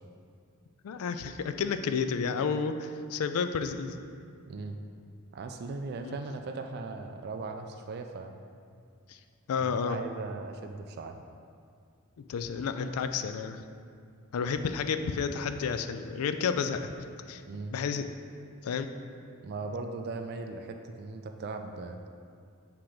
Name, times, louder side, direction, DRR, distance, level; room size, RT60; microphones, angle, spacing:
voice 1, 0.8-4.0 6.0-6.2 9.1-9.2 9.5-10.0 12.2-13.6 14.3-16.9 17.3-17.4 17.7-18.0 18.6-18.9, left 5 dB, 80° left, 9 dB, 0.4 m, -31 dB
voice 2, 5.3-8.3 9.6-11.2 17.5-17.7 19.4-22.0, right 3 dB, 45° right, 5 dB, 0.3 m, -38 dB
7.7 x 2.9 x 4.9 m, 2.3 s
head